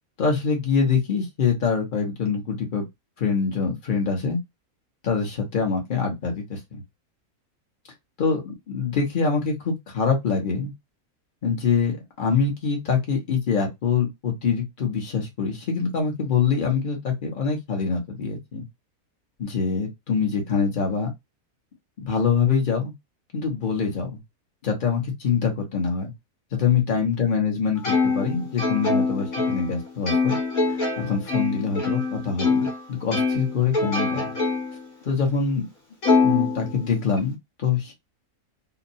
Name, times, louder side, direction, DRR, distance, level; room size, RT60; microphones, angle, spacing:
voice 1, 0.2-2.8 3.2-4.4 5.0-6.8 8.2-10.7 11.4-18.6 19.4-21.1 22.0-22.9 23.3-24.2 24.6-26.1 26.5-30.4 30.7-34.3 35.0-35.7 36.2-37.9, left 5 dB, 40° left, 0.9 m, -24 dB
Plucked string instrument, 27.8-32.8 33.1-34.8 35.3-35.4 36.0-37.2, left 4 dB, 75° left, 1.4 m, -24 dB
2.8 x 2.1 x 2.6 m
omnidirectional pair, 1.5 m